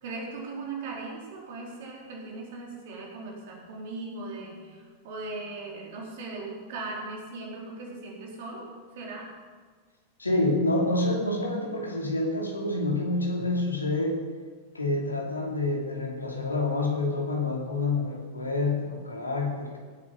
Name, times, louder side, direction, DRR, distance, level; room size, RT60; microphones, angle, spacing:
voice 1, 0.0-8.7 8.9-9.3, right 3 dB, 55° right, -2 dB, 4.3 m, -38 dB
voice 2, 10.2-14.2 14.7-19.7, left 2 dB, 80° left, 1 dB, 2.8 m, -27 dB
19.0 x 9.3 x 5.5 m, 1.5 s
figure-of-eight pair, 90°, 0 cm